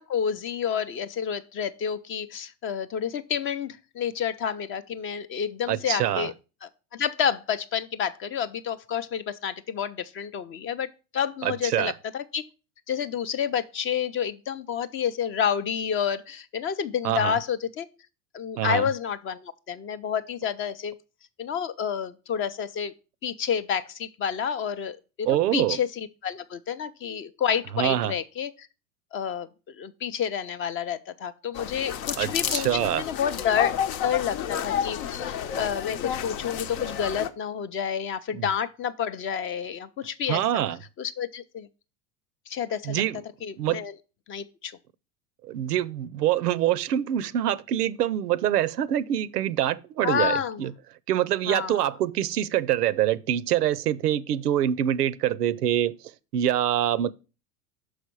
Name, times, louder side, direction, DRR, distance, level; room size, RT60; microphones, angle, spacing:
voice 1, 0.0-6.3 6.6-12.4 12.9-17.9 18.3-20.9 21.4-22.9 23.2-28.5 29.1-33.7 34.0-35.0 35.3-40.6 41.0-41.7 42.5-43.0 43.4-43.9 44.3-44.7 50.0-50.6 51.5-51.9, left 8 dB, 30° left, 0.4 m, -29 dB
voice 2, 5.7-6.3 11.4-11.9 17.0-17.4 18.6-18.9 25.2-25.8 27.7-28.1 32.2-33.1 38.3-38.5 40.3-40.8 42.8-43.2 43.6-43.8 45.4-50.7 51.1-55.9 56.3-57.1, right 11 dB, 90° right, 0.6 m, -25 dB
sound 1, 31.5-37.3, left 9 dB, 65° left, 0.8 m, -31 dB
6.2 x 4.9 x 4.5 m
hypercardioid pair, 90°, 46 cm